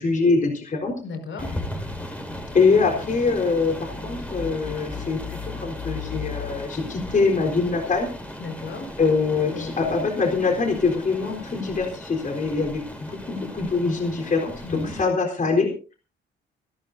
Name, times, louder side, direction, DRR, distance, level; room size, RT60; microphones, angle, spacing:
voice 1, 0.0-0.9 2.5-8.1 9.0-15.9, left 4 dB, 40° left, 2 dB, 4.0 m, -23 dB
voice 2, 1.0-1.5 8.4-8.9 9.5-10.1 14.6-15.0, left 3 dB, 75° left, 5 dB, 5.2 m, -34 dB
sound 1, 1.4-15.0, left 2 dB, 5° left, 5.0 m, -36 dB
29.5 x 12.0 x 2.7 m, 0.34 s
cardioid pair, 90°, 20 cm